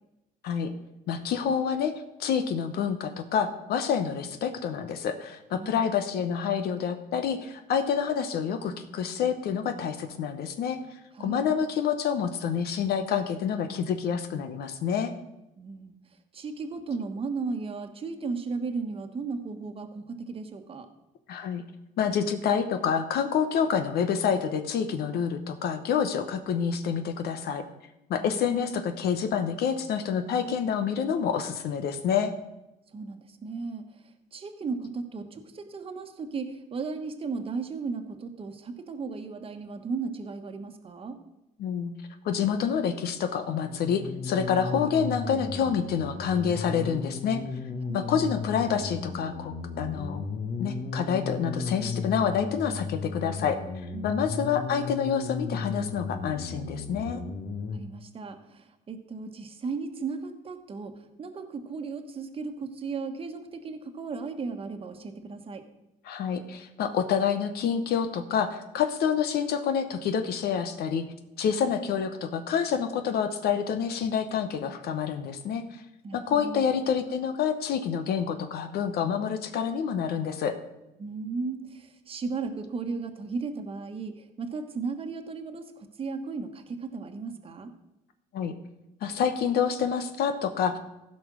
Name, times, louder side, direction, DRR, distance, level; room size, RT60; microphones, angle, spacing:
voice 1, 1.1-1.9 2.2-15.1 21.3-21.6 22.0-27.6 28.1-32.3 41.6-41.9 42.2-47.4 47.9-50.2 50.6-53.6 54.0-57.2 66.0-71.1 71.4-75.8 76.1-80.6 88.3-88.5 89.0-90.8, left 7 dB, 70° left, 8 dB, 1.0 m, -28 dB
voice 2, 15.6-16.0 16.3-20.9 28.2-28.4 32.9-41.2 47.8-48.1 53.9-54.1 57.7-65.6 76.0-76.8 81.0-87.7, right 4 dB, 35° right, 6 dB, 1.3 m, -35 dB
sound 1, 43.4-57.8, left 4 dB, 50° left, 1.3 m, -35 dB
15.0 x 5.4 x 6.2 m, 0.93 s
cardioid pair, 110°, 17 cm